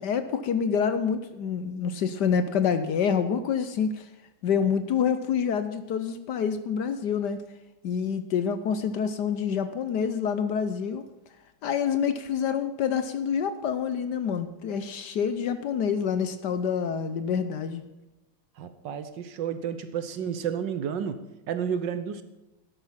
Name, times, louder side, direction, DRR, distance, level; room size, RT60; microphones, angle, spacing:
voice 1, 0.0-4.0 4.4-7.4 7.8-11.0 11.6-17.8, left 7 dB, 65° left, 11 dB, 1.2 m, -27 dB
voice 2, 18.6-22.2, right 8 dB, 65° right, 11 dB, 1.5 m, -31 dB
12.0 x 11.0 x 5.7 m, 1.0 s
omnidirectional pair, 2.2 m